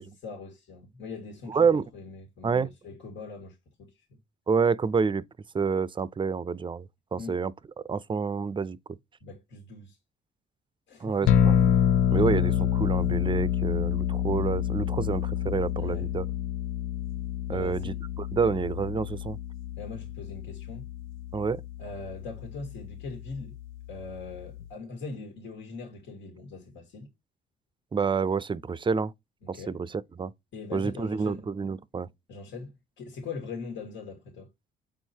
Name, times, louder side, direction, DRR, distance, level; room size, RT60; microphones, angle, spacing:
voice 1, 0.0-1.7 1.9-3.9 7.2-7.3 9.2-10.0 10.9-11.3 11.8-11.9 15.8-16.1 17.5-18.0 19.8-20.9 21.8-23.5 23.9-27.1 29.4-29.8 30.5-31.4 32.3-34.5, left 4 dB, 70° left, 1.9 m, -41 dB
voice 2, 1.5-1.8 2.4-2.7 4.5-5.2 5.5-7.5 7.9-8.8 11.0-11.6 12.1-16.3 17.5-19.4 21.3-21.6 27.9-29.1 29.5-29.9 30.2-30.3 30.7-32.1, right 5 dB, 25° right, 0.5 m, -28 dB
sound 1, 11.3-24.7, left 10 dB, 90° left, 0.6 m, -28 dB
7.4 x 4.6 x 2.8 m
cardioid pair, 90°, 20 cm